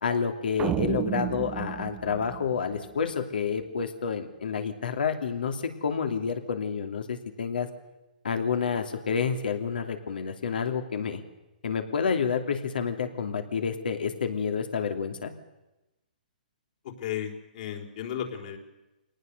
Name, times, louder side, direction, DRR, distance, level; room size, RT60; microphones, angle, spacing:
voice 1, 0.0-7.7 8.2-11.2 11.6-15.3, left 6 dB, 80° left, 6 dB, 2.9 m, -29 dB
sound 1, 0.6-3.1, right 11 dB, 20° right, 1.0 m, -32 dB
voice 2, 16.8-18.6, left 9 dB, 55° left, 3 dB, 4.1 m, -34 dB
24.5 x 18.5 x 6.8 m, 1.0 s
hypercardioid pair, 145°, 5 cm